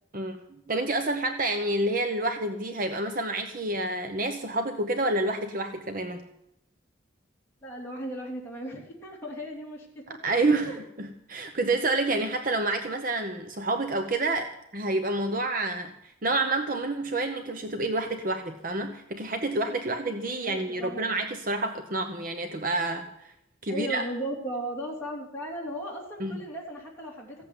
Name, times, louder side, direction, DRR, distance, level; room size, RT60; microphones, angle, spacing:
voice 1, 0.7-6.2 10.2-23.1 23.6-24.0 26.2-26.3, right 2 dB, 45° right, 6 dB, 1.0 m, -28 dB
voice 2, 7.6-10.2 10.7-10.8 20.3-21.0 23.7-27.5, right 1 dB, 10° left, -4 dB, 3.0 m, -36 dB
15.5 x 8.2 x 9.5 m, 0.79 s
head